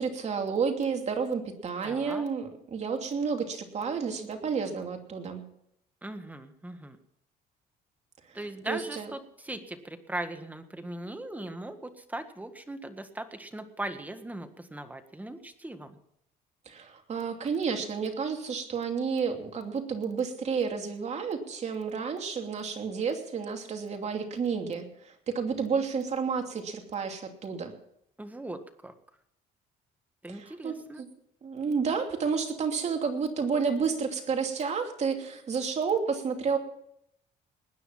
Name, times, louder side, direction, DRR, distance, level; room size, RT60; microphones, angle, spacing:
voice 1, 0.0-5.4 8.6-9.1 16.7-27.7 30.3-31.1 31.4-36.6, right 5 dB, 40° right, 4 dB, 2.8 m, -31 dB
voice 2, 1.8-2.3 6.0-7.0 8.3-16.0 28.2-28.9 30.2-31.0, right 1 dB, 10° right, 8 dB, 1.7 m, -39 dB
20.0 x 9.9 x 5.7 m, 0.74 s
cardioid pair, 110°, 17 cm